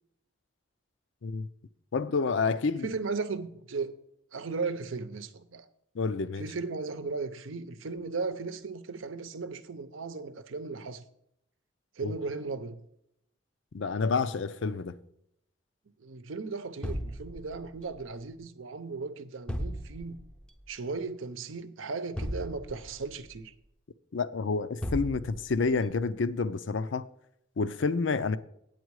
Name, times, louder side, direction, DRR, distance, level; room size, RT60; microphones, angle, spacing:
voice 1, 1.9-2.9 5.9-6.5 12.0-12.1 13.7-15.0 24.1-27.1 27.6-28.4, left 4 dB, 75° left, 0.5 m, -29 dB
voice 2, 2.8-4.0 4.3-5.7 6.4-11.0 12.0-12.8 16.0-20.2 20.7-23.5, right 4 dB, 90° right, 0.7 m, -36 dB
sound 1, 16.8-18.0 19.5-20.4 22.2-23.2 24.8-25.8, equal, 5° left, 0.5 m, -36 dB
9.2 x 8.2 x 4.7 m
head